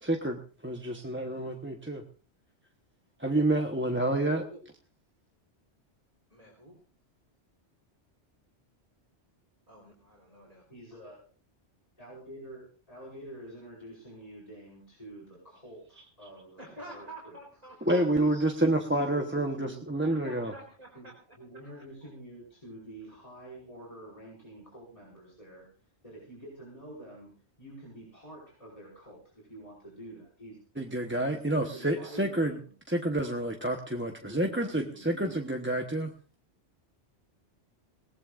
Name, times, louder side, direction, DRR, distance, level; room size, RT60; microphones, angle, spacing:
voice 1, 0.0-2.0 3.2-4.5 17.9-20.5 30.8-32.5 32.9-36.1, right 1 dB, 10° right, 2 dB, 1.0 m, -28 dB
voice 2, 6.3-6.8 9.7-10.7 16.6-18.6 20.0-21.8, right 1 dB, 35° right, -3 dB, 3.9 m, -49 dB
voice 3, 10.3-11.2 12.0-17.4 18.7-19.9 21.0-21.1 21.4-25.7 26.0-27.3 27.6-30.6 31.2-32.7 34.2-35.5, right 1 dB, 30° left, -4 dB, 5.5 m, -48 dB
21.5 x 18.0 x 2.5 m, 0.38 s
omnidirectional pair, 1.2 m